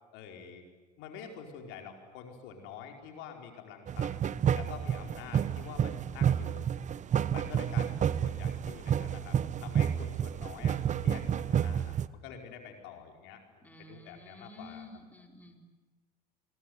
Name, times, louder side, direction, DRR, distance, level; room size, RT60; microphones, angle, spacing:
voice 1, 0.1-0.6 1.0-4.1 4.5-6.7 7.3-10.8 11.0-12.0 12.2-14.9, left 7 dB, 70° left, 3 dB, 4.7 m, -47 dB
sound 1, 3.9-12.1, right 9 dB, 35° right, 1.0 m, -30 dB
voice 2, 13.6-15.6, left 2 dB, 10° left, 2 dB, 4.6 m, -50 dB
27.0 x 22.0 x 9.5 m, 1.3 s
supercardioid pair, 90°, 21 cm